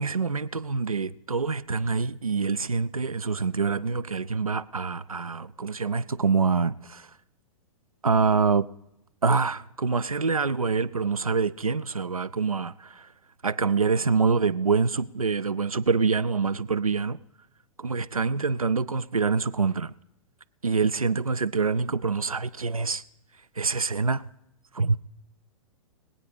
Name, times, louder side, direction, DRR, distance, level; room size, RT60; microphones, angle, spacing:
voice 1, 0.0-7.1 8.0-8.7 9.2-13.1 13.4-17.2 17.8-19.9 20.6-23.0 23.6-24.3 24.7-25.0, right 4 dB, 90° right, 0.4 m, -25 dB
21.0 x 8.5 x 5.0 m
figure-of-eight pair, 110°, 18 cm